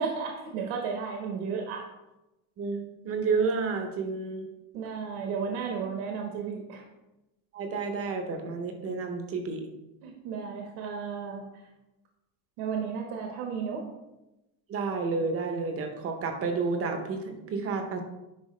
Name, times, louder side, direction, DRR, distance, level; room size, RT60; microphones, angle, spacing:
voice 1, 0.0-1.9 4.7-6.8 10.0-11.6 12.6-13.8, right 6 dB, 75° right, 1 dB, 1.3 m, -33 dB
voice 2, 2.6-4.5 7.5-9.6 14.7-18.0, right 4 dB, 30° right, 5 dB, 0.7 m, -30 dB
10.5 x 4.4 x 3.2 m, 0.96 s
cardioid pair, 180°, 48 cm